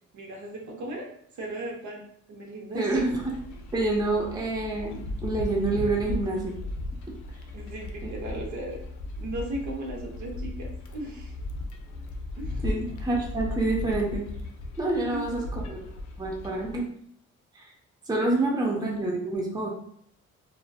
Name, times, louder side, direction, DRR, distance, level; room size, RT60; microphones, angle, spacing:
voice 1, 0.1-1.1 1.3-2.0 2.3-3.0 7.5-8.8 9.2-11.3 12.3-12.6 14.8-15.2 18.4-18.5, right 1 dB, 70° right, 0 dB, 0.7 m, -36 dB
voice 2, 2.7-3.3 3.7-6.5 8.0-8.1 12.6-14.2 14.8-15.8 16.2-16.8 17.5-17.6 18.1-19.7, right 2 dB, 15° right, -1 dB, 0.5 m, -27 dB
sound 1, 2.9-16.8, left 2 dB, 70° left, 0.5 m, -36 dB
2.4 x 2.2 x 2.3 m, 0.66 s
cardioid pair, 90°, 30 cm